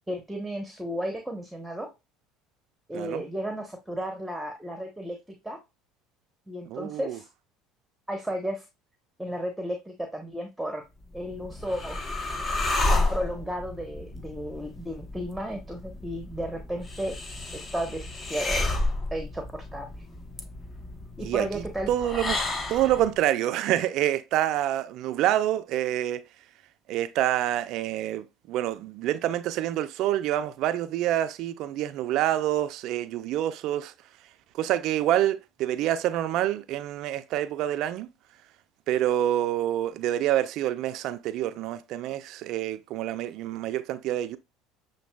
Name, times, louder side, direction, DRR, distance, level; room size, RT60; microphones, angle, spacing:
voice 1, 0.1-1.9 2.9-5.6 6.5-7.2 8.1-8.6 9.2-10.8 11.1-12.0 12.9-17.1 17.5-18.7 19.1-19.9 21.2-21.9, equal, 5° right, 0.9 m, -33 dB
voice 2, 6.7-7.2 21.2-22.4 22.7-26.2 26.9-33.9 34.5-38.1 38.9-44.4, right 12 dB, 60° right, 0.3 m, -27 dB
sound 1, 11.0-23.1, left 2 dB, 30° left, 0.8 m, -31 dB
6.9 x 2.6 x 2.2 m
hypercardioid pair, 75°, 0 cm